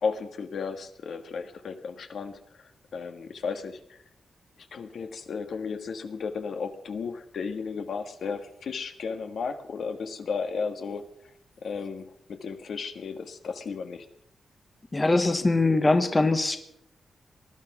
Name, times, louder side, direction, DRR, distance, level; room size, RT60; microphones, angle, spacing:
voice 1, 0.0-4.0 4.7-11.3 11.6-14.0, left 5 dB, 65° left, 7 dB, 1.6 m, -34 dB
voice 2, 14.9-16.6, left 2 dB, 20° left, 9 dB, 1.1 m, -22 dB
19.0 x 12.0 x 6.0 m, 0.74 s
wide cardioid pair, 135°, 0 cm